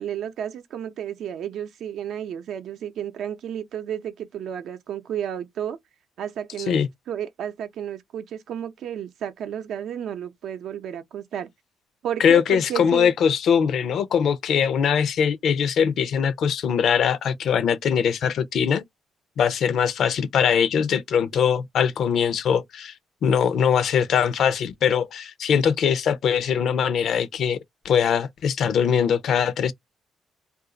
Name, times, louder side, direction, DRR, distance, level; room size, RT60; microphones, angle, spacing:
voice 1, 0.0-5.8 6.2-6.8 7.1-11.5 12.0-13.1, right 9 dB, 75° right, 0.6 m, -32 dB
voice 2, 12.2-18.8 19.4-22.9 23.2-27.6 27.8-29.7, left 7 dB, 70° left, 0.6 m, -21 dB
2.5 x 2.4 x 3.8 m
cardioid pair, 90°, 0 cm